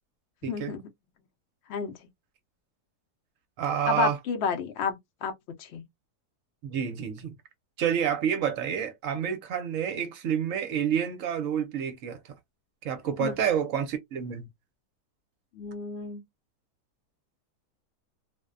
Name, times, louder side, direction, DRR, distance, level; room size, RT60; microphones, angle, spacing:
voice 1, 0.4-0.8 1.7-2.1 3.8-5.8 13.2-13.3 15.5-16.2, left 6 dB, 70° left, 0.6 m, -31 dB
voice 2, 3.6-4.1 6.6-7.3 7.8-12.2 12.8-14.5, right 8 dB, 65° right, 0.9 m, -28 dB
2.5 x 2.1 x 2.3 m
omnidirectional pair, 1.7 m